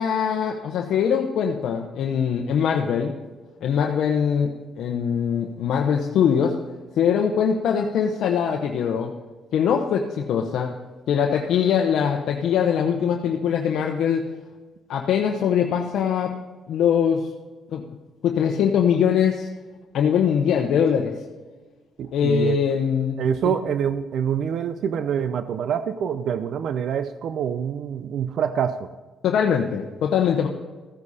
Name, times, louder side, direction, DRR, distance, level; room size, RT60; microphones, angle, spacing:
voice 1, 0.0-3.1 3.6-6.6 7.0-9.1 9.5-10.7 11.1-14.3 14.9-16.3 16.7-17.3 17.7-17.8 18.2-19.5 19.9-21.1 22.1-23.2 23.4-23.5 29.2-30.5, left 7 dB, 75° left, 2 dB, 0.9 m, -22 dB
voice 2, 22.0-22.6 23.2-28.8, right 8 dB, 70° right, 12 dB, 0.5 m, -26 dB
14.5 x 9.8 x 4.2 m, 1.3 s
cardioid pair, 90°, 0 cm